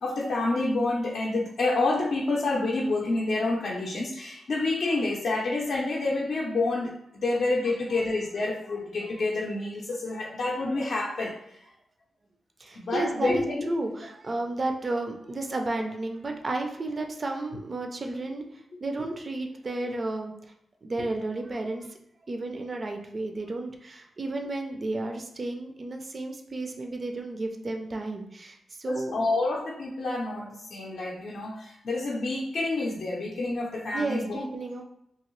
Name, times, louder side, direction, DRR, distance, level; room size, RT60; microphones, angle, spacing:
voice 1, 0.0-11.6 12.7-13.5 28.9-34.4, left 2 dB, 60° left, -4 dB, 0.5 m, -28 dB
voice 2, 12.6-20.3 20.8-22.0 22.3-29.1 33.9-34.8, right 2 dB, 35° right, 3 dB, 0.4 m, -32 dB
2.8 x 2.7 x 3.0 m, 0.79 s
wide cardioid pair, 120°, 0 cm